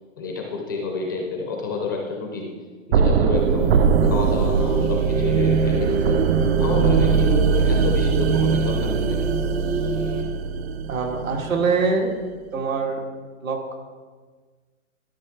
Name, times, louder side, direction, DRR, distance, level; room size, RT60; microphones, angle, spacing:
voice 1, 0.2-2.5 2.9-6.2 6.6-9.3, left 4 dB, 15° left, 1 dB, 0.4 m, -30 dB
sound 1, 2.9-11.8, right 5 dB, 55° right, 0.5 m, -21 dB
sound 2, 3.4-10.2, right 2 dB, 70° right, 1.6 m, -29 dB
voice 2, 10.9-12.2 12.5-13.0 13.4-13.7, right 4 dB, 85° right, 2 dB, 1.8 m, -24 dB
12.0 x 5.8 x 3.5 m, 1.5 s
hypercardioid pair, 150°, 39 cm